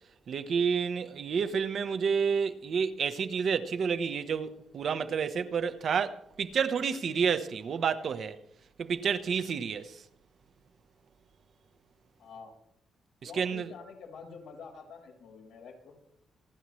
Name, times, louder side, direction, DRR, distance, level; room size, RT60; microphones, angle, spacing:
voice 1, 0.3-8.4 8.8-10.0 13.2-13.7, right 6 dB, 60° right, 1.1 m, -30 dB
voice 2, 12.2-12.5 13.2-15.9, left 5 dB, 90° left, 4.6 m, -47 dB
28.0 x 9.9 x 3.2 m
cardioid pair, 105°, 0 cm